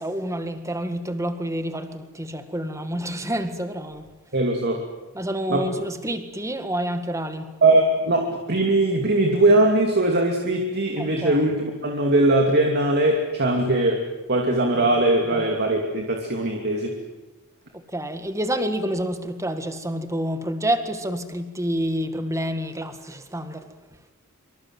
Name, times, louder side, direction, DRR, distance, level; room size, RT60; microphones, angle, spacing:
voice 1, 0.0-4.1 5.1-7.6 11.0-11.4 15.3-15.5 17.7-23.7, equal, 15° right, 1.9 m, -28 dB
voice 2, 4.3-4.8 5.5-5.7 7.6-14.0 14.3-16.9, right 2 dB, 50° right, 2.7 m, -20 dB
25.0 x 25.0 x 7.9 m
head